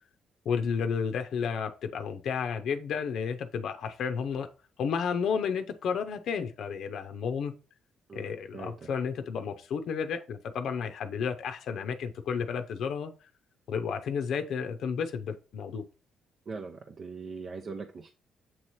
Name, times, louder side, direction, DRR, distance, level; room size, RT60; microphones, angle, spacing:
voice 1, 0.4-4.5 4.8-7.5 8.1-13.1 13.7-15.8, left 6 dB, 70° left, 6 dB, 0.6 m, -32 dB
voice 2, 8.1-8.9 16.5-18.1, right 4 dB, 50° right, 3 dB, 0.7 m, -41 dB
7.6 x 3.1 x 4.2 m, 0.35 s
cardioid pair, 90°, 0 cm